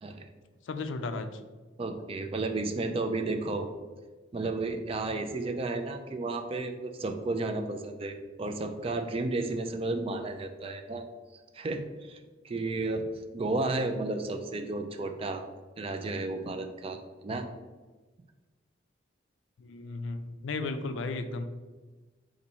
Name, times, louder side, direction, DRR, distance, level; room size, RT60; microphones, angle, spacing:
voice 1, 0.7-1.3 19.6-21.4, left 3 dB, 75° left, 9 dB, 0.4 m, -34 dB
voice 2, 1.8-3.7 4.3-11.0 11.5-12.2 12.4-13.1 13.3-15.4 15.8-17.5, right 2 dB, 30° right, 6 dB, 0.4 m, -32 dB
4.0 x 2.6 x 4.2 m, 1.3 s
head